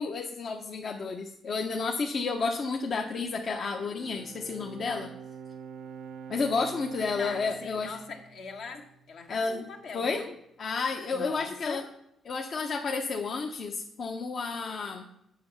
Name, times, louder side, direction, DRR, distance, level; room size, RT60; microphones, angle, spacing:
voice 1, 0.0-5.1 6.3-8.0 9.3-9.7 9.9-10.2 10.6-11.8 12.3-15.1, left 4 dB, 50° left, 2 dB, 0.8 m, -31 dB
Bowed string instrument, 3.7-9.2, right 6 dB, 75° right, 0.6 m, -46 dB
voice 2, 7.2-10.3 11.1-11.9, left 4 dB, 70° left, 3 dB, 1.3 m, -41 dB
7.6 x 5.3 x 6.9 m, 0.79 s
cardioid pair, 90°, 0 cm